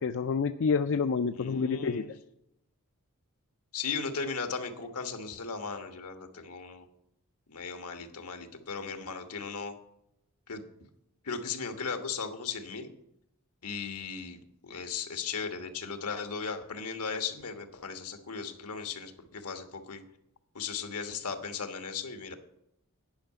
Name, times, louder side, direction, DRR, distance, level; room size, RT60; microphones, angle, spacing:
voice 1, 0.0-2.1, left 5 dB, 60° left, 8 dB, 0.4 m, -28 dB
voice 2, 1.3-2.1 3.7-6.8 7.5-9.7 10.5-10.6 11.2-12.9 13.6-20.0 20.5-22.4, left 5 dB, 80° left, 6 dB, 1.3 m, -37 dB
10.5 x 5.6 x 8.6 m, 0.80 s
head